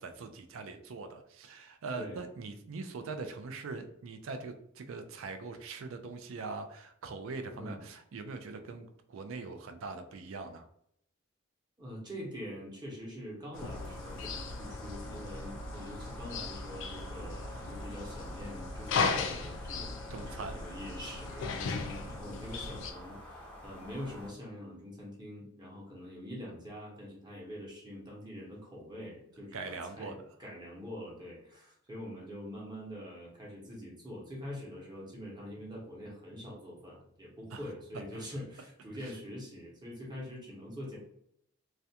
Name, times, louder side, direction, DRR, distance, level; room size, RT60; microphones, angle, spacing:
voice 1, 0.0-10.7 20.1-20.6 29.5-30.3 37.5-37.6 38.1-38.2 39.0-39.1, right 4 dB, 70° right, 7 dB, 0.4 m, -42 dB
voice 2, 7.5-7.8 11.8-41.0, equal, 20° right, -3 dB, 0.8 m, -44 dB
sound 1, 13.5-22.9, left 4 dB, 65° left, 0.3 m, -37 dB
sound 2, 13.5-24.3, left 1 dB, 5° left, 0.5 m, -48 dB
2.4 x 2.1 x 2.7 m, 0.71 s
head